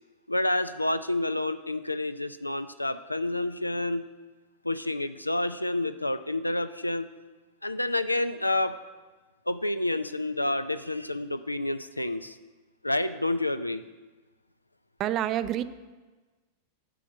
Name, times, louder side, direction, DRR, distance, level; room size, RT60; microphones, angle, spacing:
voice 1, 0.3-4.1 4.6-7.1 7.6-8.8 9.5-12.4 12.8-13.9, left 2 dB, 85° left, 12 dB, 0.4 m, -29 dB
voice 2, 15.0-15.6, right 12 dB, 35° right, 13 dB, 0.4 m, -27 dB
11.0 x 3.6 x 6.9 m, 1.3 s
figure-of-eight pair, 90°, 0 cm